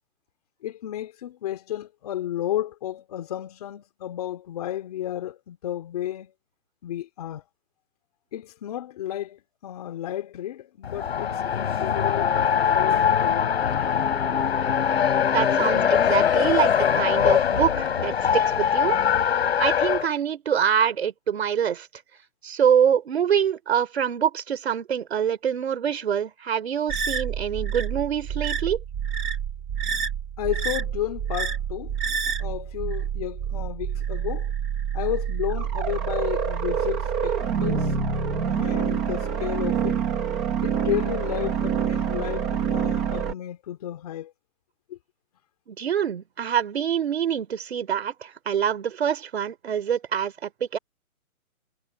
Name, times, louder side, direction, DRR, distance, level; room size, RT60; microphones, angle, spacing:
voice 1, 0.6-6.3 6.8-7.4 8.3-12.4 12.6-13.7 30.4-34.5 34.9-38.0 38.5-40.0 40.6-44.3 44.9-45.0, left 12 dB, 25° left, 2.6 m, -32 dB
Race car auto racing, 10.8-20.1, left 8 dB, 45° left, 4.2 m, -22 dB
sound 1, 13.6-19.3, left 5 dB, 75° left, 7.2 m, -32 dB
voice 2, 15.3-19.0 19.6-21.9 22.4-28.8 45.7-50.8, right 8 dB, 45° right, 3.2 m, -25 dB
sound 2, 26.9-43.3, right 7 dB, 5° right, 0.7 m, -27 dB
hypercardioid pair, 170°, 43 cm